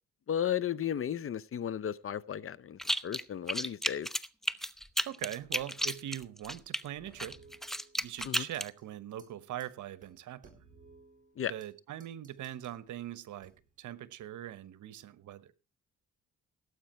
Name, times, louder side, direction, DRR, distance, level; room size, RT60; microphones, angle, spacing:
voice 1, 0.3-4.1 8.2-8.5 11.4-11.5, left 9 dB, 45° left, 0.7 m, -34 dB
sound 1, 2.8-3.2 3.5-6.8 7.2-8.7, equal, ahead, 0.8 m, -33 dB
voice 2, 5.0-7.4 8.0-10.5 11.5-15.5, right 12 dB, 75° right, 1.1 m, -42 dB
sound 2, 7.0-8.3 8.5-8.8 9.2-9.3 9.6-9.7 10.0-11.7 12.0-12.8 13.4-13.8, right 4 dB, 25° right, 5.3 m, -59 dB
17.5 x 8.2 x 4.4 m
cardioid pair, 85°, 30 cm